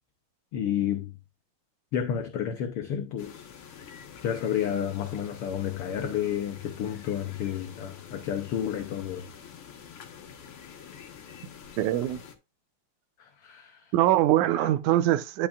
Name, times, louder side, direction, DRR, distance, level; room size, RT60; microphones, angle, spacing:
voice 1, 0.5-1.2 1.9-3.4 4.2-9.5 13.2-13.9 14.6-14.7, left 9 dB, 70° left, 1.4 m, -31 dB
sound 1, 3.2-12.4, left 7 dB, 55° left, 1.8 m, -47 dB
voice 2, 11.8-12.2 13.9-15.5, right 14 dB, 85° right, 2.1 m, -23 dB
11.0 x 5.7 x 2.4 m
omnidirectional pair, 3.4 m